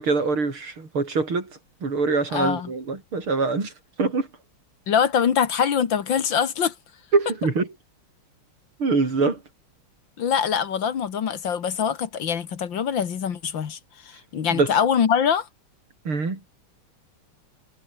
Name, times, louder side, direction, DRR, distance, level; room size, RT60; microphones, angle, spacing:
voice 1, 0.0-1.5 1.8-3.7 4.0-4.3 7.1-7.7 8.8-9.4 14.5-14.7 16.1-16.4, right 4 dB, 85° right, 5.5 m, -24 dB
voice 2, 2.3-2.7 4.9-6.7 10.2-13.8 14.1-15.5, left 7 dB, 65° left, 2.3 m, -23 dB
omnidirectional pair, 2.3 m